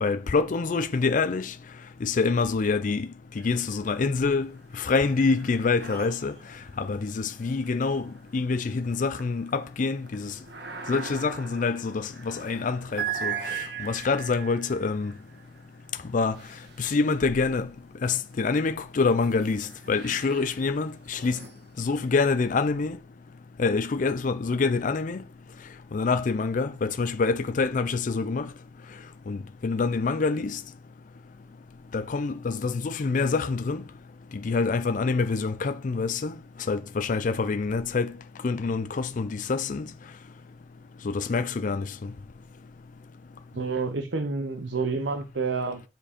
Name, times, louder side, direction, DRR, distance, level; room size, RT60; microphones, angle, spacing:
voice 1, 0.0-1.5 2.0-3.1 3.4-6.3 6.8-10.3 10.9-15.1 16.1-16.4 16.8-17.7 18.0-21.4 21.8-23.0 23.6-25.2 25.9-28.5 29.3-30.6 31.9-33.8 34.3-36.3 36.7-38.1 38.4-39.9 41.0-42.1, left 4 dB, 45° left, 0.4 m, -26 dB
sound 1, 3.4-4.0 4.4-17.6 18.2-22.7, right 7 dB, 65° right, 1.4 m, -40 dB
voice 2, 43.5-45.8, right 4 dB, 85° right, 0.8 m, -29 dB
7.4 x 4.5 x 5.1 m
head